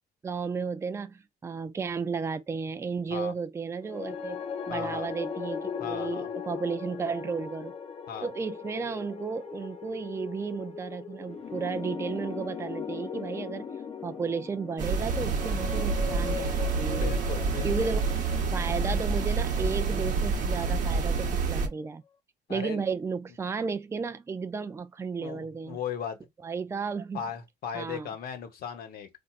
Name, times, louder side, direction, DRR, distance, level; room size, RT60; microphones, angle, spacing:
voice 1, 0.2-4.4 4.7-7.7 8.2-13.7 14.0-17.1 17.6-18.1 18.5-22.0 22.5-25.8 26.4-27.2 27.7-28.1, right 5 dB, 15° right, 0.4 m, -33 dB
sound 1, 3.8-20.1, left 6 dB, 35° left, 0.6 m, -39 dB
voice 2, 4.7-5.1 5.8-6.3 8.1-8.3 16.9-17.9 22.5-22.8 25.2-26.2 27.1-29.1, left 8 dB, 60° left, 1.1 m, -37 dB
sound 2, 14.8-21.7, right 4 dB, 50° right, 1.0 m, -28 dB
4.4 x 2.6 x 2.4 m
cardioid pair, 110°, 17 cm